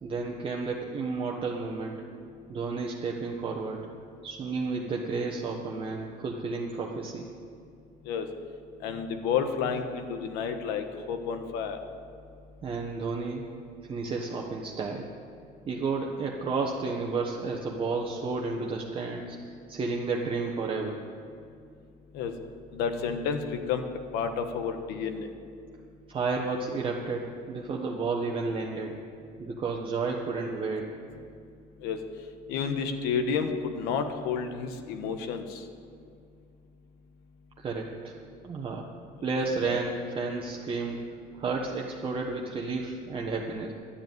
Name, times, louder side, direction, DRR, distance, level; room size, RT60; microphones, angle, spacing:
voice 1, 0.0-2.1 2.5-3.9 4.2-7.2 12.6-13.4 13.8-15.1 15.7-21.0 26.1-29.0 29.4-30.9 37.6-38.1 38.4-38.9 39.2-41.0 41.3-43.7, right 4 dB, 35° right, 0 dB, 1.2 m, -32 dB
voice 2, 8.8-11.8 22.1-22.3 22.7-23.8 24.1-25.3 31.8-32.0 32.5-35.6 39.2-39.3, left 6 dB, 85° left, 7 dB, 1.3 m, -30 dB
11.5 x 8.0 x 9.2 m, 2.4 s
cardioid pair, 125°, 16 cm